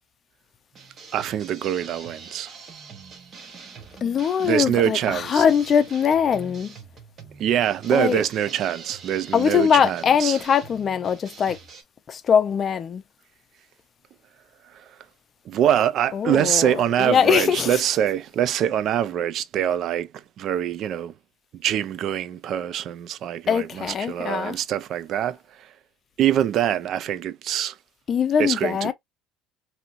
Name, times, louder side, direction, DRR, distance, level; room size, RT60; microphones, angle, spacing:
sound 1, 0.7-11.8, right 5 dB, 40° right, 1.0 m, -44 dB
voice 1, 1.1-2.5 4.4-5.5 7.4-10.4 15.5-20.1 20.4-21.1 21.6-25.4 26.2-27.7 28.4-28.9, right 10 dB, 55° right, 0.4 m, -24 dB
voice 2, 4.0-6.7 7.9-8.2 9.3-11.6 12.1-13.0 16.1-17.8 23.5-24.6 28.1-28.9, left 7 dB, 35° left, 0.5 m, -22 dB
2.9 x 2.7 x 2.5 m
cardioid pair, 120°, 0 cm